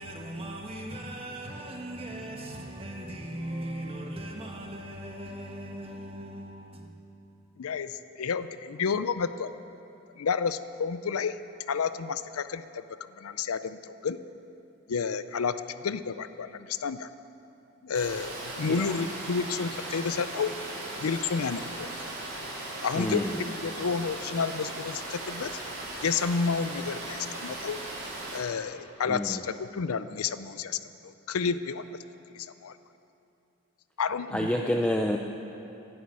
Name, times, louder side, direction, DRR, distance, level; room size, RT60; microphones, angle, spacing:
voice 1, 0.0-6.9, right 1 dB, 25° right, 1.5 m, -38 dB
voice 2, 7.6-9.5 10.2-11.4 11.7-12.8 13.2-14.2 14.9-17.1 17.8-20.5 21.0-22.0 22.8-23.2 23.6-25.6 26.0-27.8 28.3-31.9 32.3-32.8 34.0-34.5, left 5 dB, 85° left, 0.5 m, -30 dB
Water, 17.9-28.4, right 2 dB, 55° right, 4.0 m, -38 dB
voice 3, 22.9-23.4 29.1-29.4 34.3-35.2, equal, 5° left, 0.4 m, -28 dB
11.5 x 11.0 x 8.4 m
head